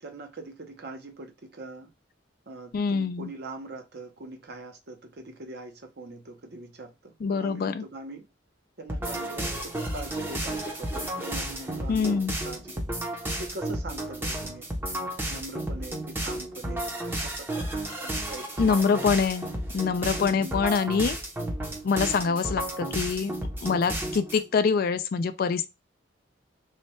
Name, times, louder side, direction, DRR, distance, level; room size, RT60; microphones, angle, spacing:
voice 1, 0.0-1.9 2.5-8.3 8.8-12.8 13.4-14.7 15.3-19.0 20.2-20.5 22.0-22.4, right 2 dB, 55° right, 0.7 m, -42 dB
voice 2, 2.7-3.3 7.2-7.8 11.9-12.3 18.6-19.5 19.7-21.2 21.8-23.3 23.6-25.7, left 5 dB, 50° left, 0.3 m, -25 dB
sound 1, 8.9-24.4, right 1 dB, 10° right, 0.6 m, -32 dB
3.2 x 2.2 x 4.1 m
head